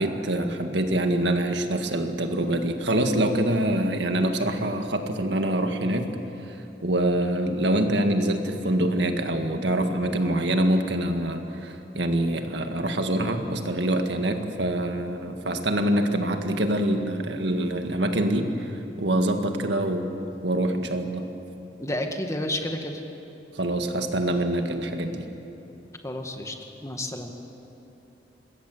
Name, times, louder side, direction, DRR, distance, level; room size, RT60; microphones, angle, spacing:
voice 1, 0.0-6.2 6.5-6.6 6.8-21.3 23.5-25.3, right 1 dB, 70° right, 5 dB, 1.9 m, -25 dB
voice 2, 21.8-23.0 26.0-26.6 26.8-27.3, left 1 dB, 15° left, 4 dB, 1.9 m, -30 dB
26.0 x 21.5 x 7.9 m, 2.9 s
head